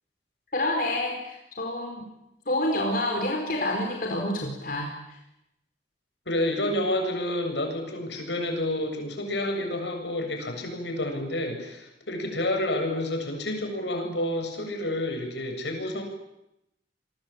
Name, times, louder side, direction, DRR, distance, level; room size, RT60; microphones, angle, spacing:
voice 1, 0.5-2.0 2.5-4.9, left 1 dB, 55° left, 1 dB, 4.7 m, -28 dB
voice 2, 6.3-16.0, left 1 dB, 80° left, 4 dB, 7.6 m, -29 dB
29.0 x 22.5 x 8.9 m, 0.86 s
head